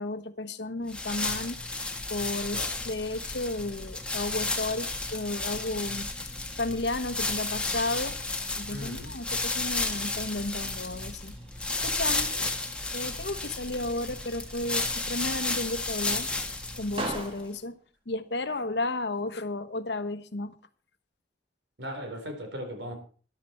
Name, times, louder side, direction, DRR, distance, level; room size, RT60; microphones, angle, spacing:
voice 1, 0.0-1.6 2.1-6.1 6.6-8.2 8.6-11.3 11.8-12.3 12.9-16.3 16.8-17.8 18.1-20.5, left 2 dB, 70° left, 11 dB, 1.1 m, -33 dB
sound 1, 0.9-17.4, left 2 dB, 5° left, 1.5 m, -33 dB
sound 2, 8.3-19.2, right 1 dB, 30° right, 2.4 m, -45 dB
voice 2, 8.7-9.1 12.3-12.4 21.8-23.0, equal, 80° right, 4 dB, 4.2 m, -38 dB
14.0 x 11.5 x 4.4 m, 0.41 s
head